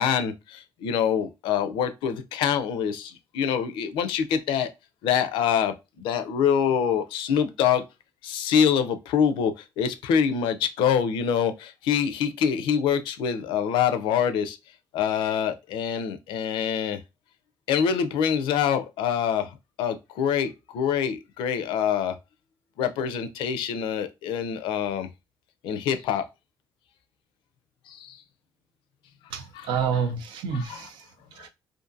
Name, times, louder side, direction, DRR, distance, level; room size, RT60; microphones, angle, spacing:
voice 1, 0.0-4.7 5.0-7.8 8.2-14.6 14.9-17.0 17.7-22.2 22.8-25.1 25.6-26.2 27.9-28.2, left 8 dB, 85° left, 0.4 m, -25 dB
voice 2, 29.3-31.5, right 6 dB, 85° right, 0.5 m, -29 dB
2.5 x 2.5 x 2.5 m
cardioid pair, 95°, 8 cm